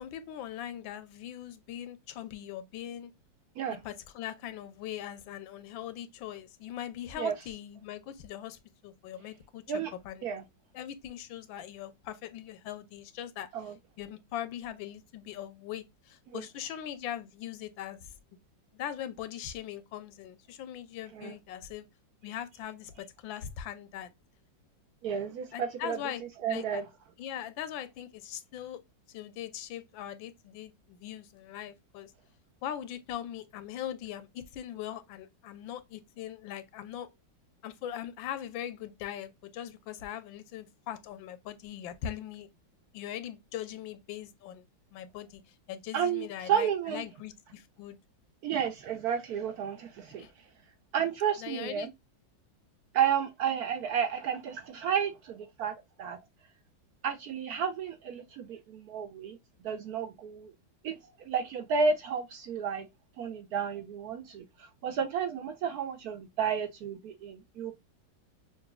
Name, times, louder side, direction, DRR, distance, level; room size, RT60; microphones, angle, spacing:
voice 1, 0.0-3.1 3.8-9.6 10.0-10.3 10.7-13.5 14.0-18.1 18.7-21.9 22.2-24.1 25.5-26.2 26.5-26.8 27.2-28.8 29.1-32.1 32.6-37.1 37.6-42.5 42.9-44.6 44.9-48.0 50.2-50.3 51.4-51.9, left 11 dB, 90° left, 1.4 m, -41 dB
voice 2, 25.0-26.0 26.4-26.8 45.9-47.0 48.4-50.3 50.9-51.9 52.9-56.2 57.0-59.4 59.6-60.5 60.8-62.9 63.2-64.4 64.8-67.7, right 7 dB, 75° right, 0.9 m, -31 dB
5.9 x 2.6 x 2.2 m
omnidirectional pair, 2.1 m